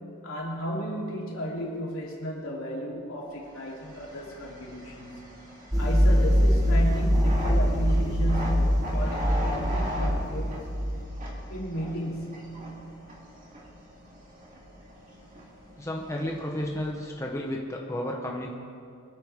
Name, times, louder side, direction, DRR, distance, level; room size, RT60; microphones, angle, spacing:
voice 1, 0.0-5.3 5.8-10.6 11.5-12.8 16.2-16.3, equal, 70° left, -4 dB, 3.4 m, -34 dB
sound 1, 3.5-17.3, equal, 40° right, 2.6 m, -40 dB
sound 2, 5.7-11.0, equal, 15° right, 1.2 m, -23 dB
voice 2, 15.8-18.5, left 1 dB, 15° left, -1 dB, 1.0 m, -32 dB
24.5 x 9.9 x 3.6 m, 2.4 s
head